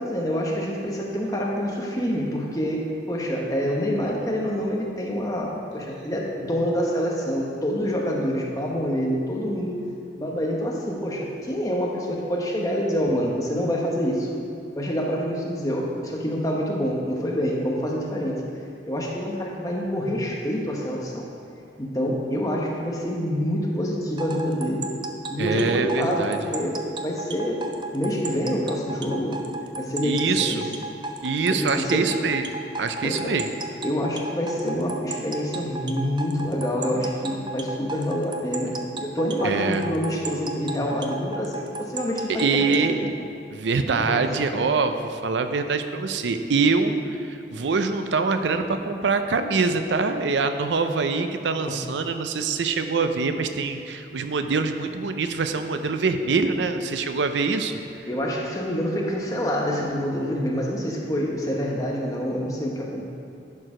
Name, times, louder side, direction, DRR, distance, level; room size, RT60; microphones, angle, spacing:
voice 1, 0.0-9.8 10.2-14.3 14.7-18.3 18.9-21.3 21.8-24.9 25.3-27.6 27.9-29.4 29.8-30.6 31.5-32.1 33.0-33.3 33.8-43.0 43.9-44.2 51.7-51.8 58.1-63.0, equal, 20° left, -2 dB, 1.0 m, -26 dB
sound 1, 24.2-42.9, right 3 dB, 25° right, 0.4 m, -34 dB
voice 2, 25.4-26.4 30.0-30.7 31.2-32.5 32.8-33.5 39.4-39.8 42.3-43.1 43.5-58.1, right 4 dB, 90° right, 8 dB, 0.5 m, -24 dB
11.0 x 4.7 x 5.0 m, 2.5 s
head